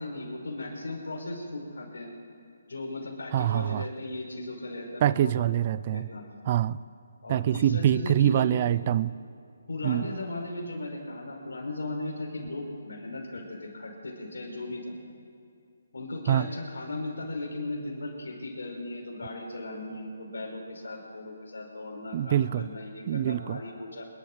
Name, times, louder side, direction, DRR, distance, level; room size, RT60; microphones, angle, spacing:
voice 1, 0.0-2.1 2.7-5.4 5.9-6.2 7.2-8.6 9.7-15.0 15.9-24.1, left 2 dB, 80° left, -1 dB, 5.3 m, -37 dB
voice 2, 3.3-3.9 5.0-6.1 6.5-6.8 7.3-9.2 9.8-10.1 16.3-16.5 22.1-22.7 23.1-23.6, right 11 dB, 35° right, 18 dB, 0.4 m, -25 dB
27.0 x 11.5 x 4.7 m, 2.4 s
hypercardioid pair, 155°, 0 cm